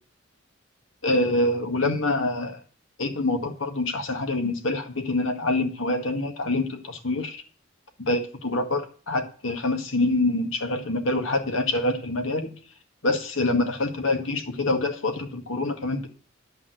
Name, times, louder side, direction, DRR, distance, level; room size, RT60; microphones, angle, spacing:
voice 1, 1.0-2.6 3.0-7.4 8.0-12.5 13.0-16.1, left 2 dB, 90° left, 4 dB, 1.9 m, -26 dB
11.0 x 5.5 x 7.8 m, 0.40 s
head